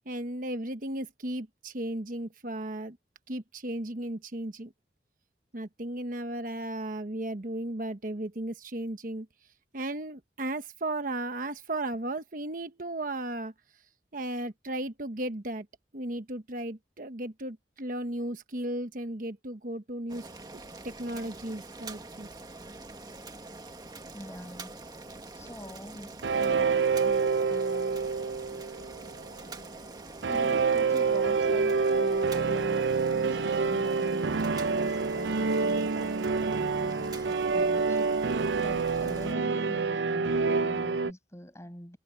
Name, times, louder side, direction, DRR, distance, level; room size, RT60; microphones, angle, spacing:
voice 1, 0.0-3.0 3.3-4.7 5.5-9.3 9.7-13.8 14.1-15.7 15.9-20.3 20.8-22.3, right 1 dB, 50° right, 1.1 m, -35 dB
Boiling, 20.1-39.3, right 2 dB, 25° right, 1.7 m, -45 dB
voice 2, 24.1-24.8 25.3-28.1 30.3-42.0, equal, 15° left, 6.0 m, -45 dB
sound 1, 26.2-29.4 30.2-41.1, right 4 dB, 85° right, 0.6 m, -27 dB
head